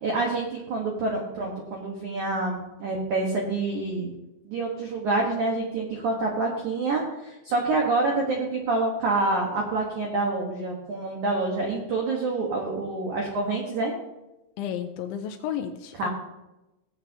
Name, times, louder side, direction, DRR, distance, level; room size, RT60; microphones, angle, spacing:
voice 1, 0.0-4.1 4.5-13.9 15.9-16.1, right 3 dB, 75° right, -1 dB, 1.7 m, -27 dB
voice 2, 14.6-16.1, left 9 dB, 80° left, 7 dB, 2.8 m, -32 dB
19.0 x 8.0 x 2.9 m, 0.99 s
omnidirectional pair, 5.7 m